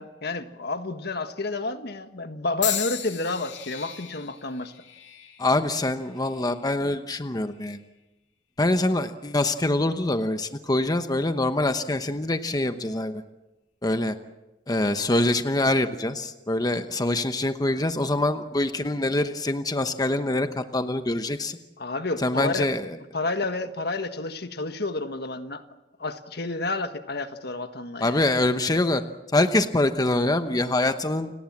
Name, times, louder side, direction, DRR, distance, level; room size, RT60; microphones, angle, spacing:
voice 1, 0.0-4.7 17.6-17.7 21.8-22.6 23.1-25.6 26.0-28.2, left 3 dB, 65° left, 8 dB, 1.5 m, -30 dB
sound 1, 2.6-6.7 7.5-7.9 8.8-9.0, left 10 dB, 90° left, 2.6 m, -36 dB
voice 2, 5.4-7.8 8.6-13.2 13.8-14.1 14.7-21.6 22.2-23.0 28.0-29.0 29.3-31.3, left 2 dB, 20° left, 8 dB, 1.0 m, -24 dB
29.5 x 18.5 x 7.3 m, 1.0 s
head